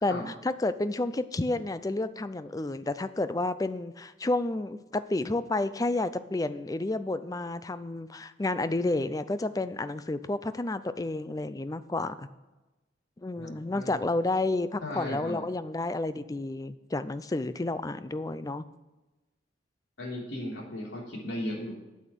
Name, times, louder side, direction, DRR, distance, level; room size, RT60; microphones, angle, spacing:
voice 1, 0.0-12.3 13.2-18.6, left 2 dB, 20° left, 13 dB, 0.4 m, -30 dB
voice 2, 13.4-13.9 14.8-15.4 20.0-21.7, left 1 dB, 90° left, -3 dB, 3.3 m, -36 dB
8.8 x 8.5 x 6.2 m, 1.1 s
head